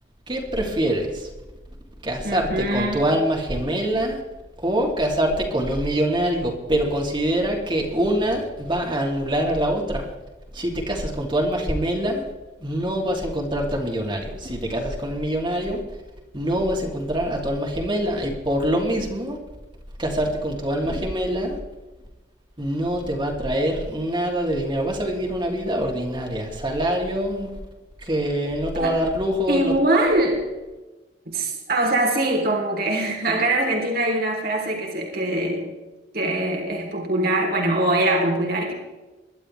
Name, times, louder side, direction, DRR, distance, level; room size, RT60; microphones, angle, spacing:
voice 1, 0.3-1.3 2.0-4.2 4.6-10.1 10.5-12.2 12.6-15.8 16.3-19.4 20.0-21.6 22.6-27.5 28.0-29.7, equal, 25° right, 0 dB, 3.0 m, -24 dB
voice 2, 2.2-3.0 28.8-28.9 29.5-30.4 31.3-35.7 36.1-38.7, right 1 dB, 55° right, 0 dB, 3.5 m, -23 dB
22.5 x 12.0 x 3.4 m, 1.1 s
head